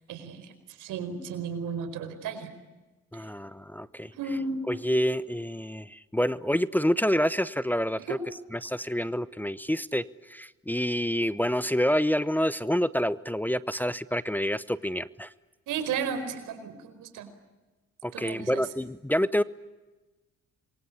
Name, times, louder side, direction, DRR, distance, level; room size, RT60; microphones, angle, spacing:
voice 1, 0.1-2.5 3.1-3.3 4.1-4.6 8.0-8.2 15.7-17.3 18.1-18.6, right 5 dB, 90° right, 9 dB, 4.6 m, -34 dB
voice 2, 3.1-4.1 4.7-8.2 8.5-15.3 18.0-19.4, equal, 5° left, 15 dB, 0.8 m, -27 dB
27.0 x 23.5 x 8.4 m, 1.2 s
cardioid pair, 90°, 30 cm